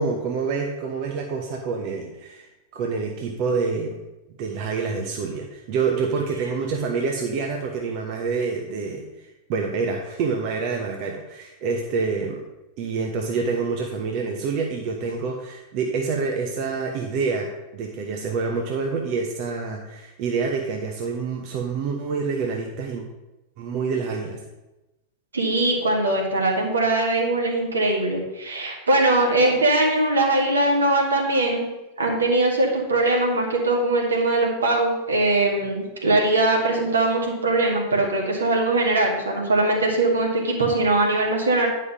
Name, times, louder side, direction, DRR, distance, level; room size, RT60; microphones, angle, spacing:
voice 1, 0.0-4.0 4.4-9.0 9.5-12.4 12.8-23.0 23.6-24.4, right 4 dB, 45° right, 1 dB, 1.0 m, -27 dB
voice 2, 25.3-31.7 32.0-41.7, right 2 dB, 70° right, 0 dB, 2.1 m, -21 dB
9.7 x 5.5 x 5.4 m, 1.0 s
figure-of-eight pair, 90°, 0 cm